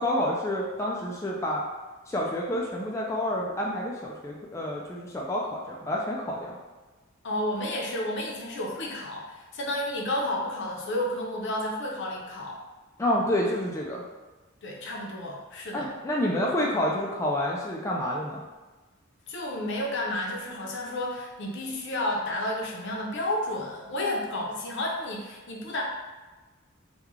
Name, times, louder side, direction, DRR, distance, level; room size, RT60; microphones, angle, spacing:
voice 1, 0.0-1.6 2.1-6.6 13.0-14.0 15.7-18.4, left 1 dB, 15° left, -3 dB, 0.3 m, -28 dB
voice 2, 7.2-12.6 14.6-15.9 19.3-25.8, left 1 dB, 60° left, -1 dB, 0.7 m, -31 dB
3.0 x 2.3 x 3.6 m, 1.2 s
head